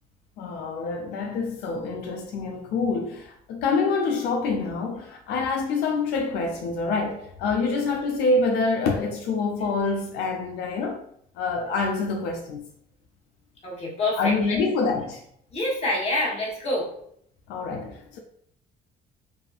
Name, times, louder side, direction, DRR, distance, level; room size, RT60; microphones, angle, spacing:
voice 1, 0.4-11.0 11.4-12.7 14.2-15.2 17.5-18.2, left 3 dB, 85° left, 0.4 m, -26 dB
voice 2, 13.6-14.6 15.5-16.9, left 1 dB, 35° left, 1.0 m, -27 dB
2.6 x 2.4 x 2.3 m
cardioid pair, 110°, 17 cm